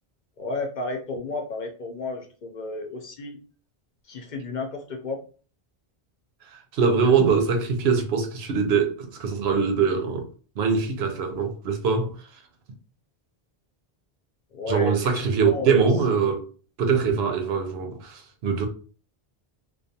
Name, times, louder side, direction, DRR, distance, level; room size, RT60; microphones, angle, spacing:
voice 1, 0.4-3.4 4.1-5.2 14.5-15.9, left 3 dB, 60° left, 0.6 m, -32 dB
voice 2, 6.5-10.3 10.6-12.1 14.7-16.4 16.8-18.7, right 5 dB, 90° right, 0.9 m, -23 dB
2.3 x 2.3 x 2.6 m
omnidirectional pair, 1.0 m